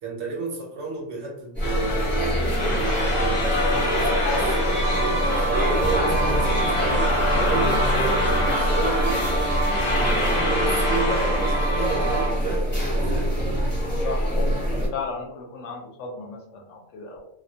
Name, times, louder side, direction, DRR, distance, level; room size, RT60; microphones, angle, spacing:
voice 1, 0.0-4.6 5.4-9.4 9.7-13.4 14.7-14.9, right 3 dB, 65° right, -1 dB, 0.8 m, -32 dB
sound 1, 1.5-14.9, equal, 10° left, 0.8 m, -24 dB
sound 2, 1.6-12.3, left 2 dB, 40° left, 0.4 m, -27 dB
sound 3, 4.8-12.3, right 3 dB, 90° right, 1.0 m, -29 dB
voice 2, 13.9-14.6 14.9-17.3, left 4 dB, 70° left, 0 dB, 0.8 m, -35 dB
2.2 x 2.2 x 2.6 m, 0.76 s
omnidirectional pair, 1.4 m